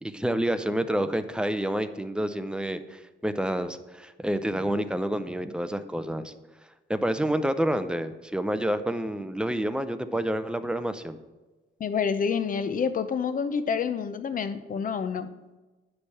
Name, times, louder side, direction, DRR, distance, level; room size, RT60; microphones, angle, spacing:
voice 1, 0.0-6.3 6.9-11.2, right 1 dB, 5° right, 10 dB, 0.5 m, -28 dB
voice 2, 11.8-15.3, left 6 dB, 45° left, 11 dB, 0.6 m, -28 dB
9.8 x 3.4 x 7.0 m, 1.2 s
cardioid pair, 90°, 20 cm